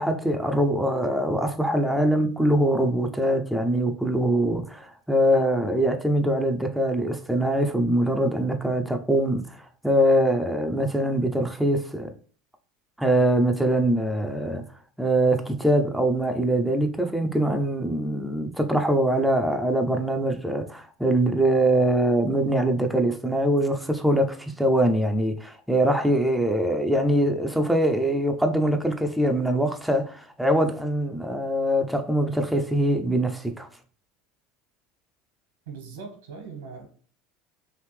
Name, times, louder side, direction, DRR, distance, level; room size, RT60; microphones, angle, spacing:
voice 1, 0.0-12.1 13.0-14.6 15.0-33.7, right 1 dB, ahead, 0.5 m, -23 dB
voice 2, 35.7-36.9, right 5 dB, 80° right, 1.2 m, -40 dB
3.2 x 2.6 x 3.3 m
hypercardioid pair, 80°, 0 cm